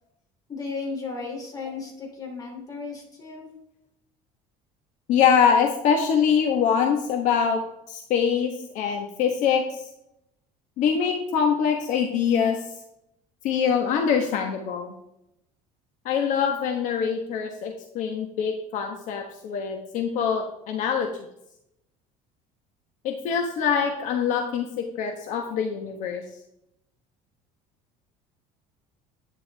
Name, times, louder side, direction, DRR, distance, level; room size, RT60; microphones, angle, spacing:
voice 1, 0.5-3.5, left 4 dB, 25° left, 1 dB, 2.8 m, -35 dB
voice 2, 5.1-7.6 7.9-9.8 10.8-12.6 13.4-14.9 16.0-21.3 23.0-24.7 25.0-26.2, left 7 dB, 55° left, 3 dB, 1.2 m, -24 dB
11.0 x 9.4 x 3.4 m, 0.81 s
cardioid pair, 165°, 15 cm